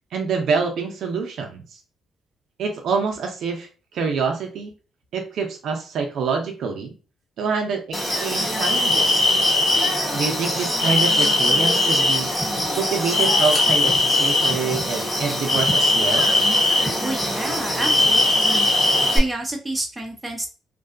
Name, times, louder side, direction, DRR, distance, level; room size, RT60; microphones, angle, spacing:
voice 1, 0.1-1.8 2.6-3.7 3.9-4.7 5.1-6.9 7.4-9.3 10.1-12.3 12.7-16.4, right 5 dB, 70° right, 2 dB, 0.5 m, -26 dB
sound 1, 7.9-19.2, left 2 dB, 20° left, 1.1 m, -20 dB
voice 2, 17.0-18.7 19.1-20.5, right 2 dB, 15° right, 1 dB, 0.7 m, -29 dB
2.6 x 2.2 x 2.5 m, 0.35 s
cardioid pair, 90°, 0 cm